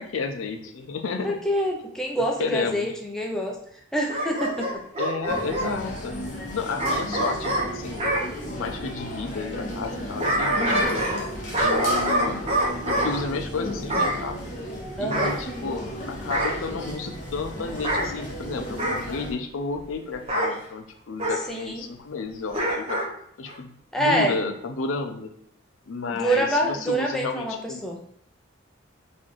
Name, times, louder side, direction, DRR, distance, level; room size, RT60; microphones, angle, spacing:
voice 1, 0.0-1.4 2.4-2.9 5.0-6.2 6.5-8.0 8.5-11.0 11.6-12.5 12.9-14.4 15.0-23.0 23.4-25.3 25.9-27.8, left 4 dB, 85° left, 6 dB, 0.5 m, -32 dB
voice 2, 1.2-3.6 3.9-4.7 15.0-15.4 21.5-21.8 23.9-24.3 26.1-28.0, right 1 dB, 5° left, 0 dB, 0.4 m, -26 dB
Bark / Growling, 4.1-5.7 6.8-8.2 9.9-11.3 11.5-13.1 13.9-14.2 15.1-15.9 16.3-16.6 17.7-18.1 18.8-19.1 20.3-20.5 21.2-21.4 22.5-23.1 23.5-23.6, right 1 dB, 30° right, 0.7 m, -25 dB
sound 1, 5.3-19.3, equal, 40° left, 0.8 m, -35 dB
4.1 x 2.4 x 3.1 m, 0.68 s
head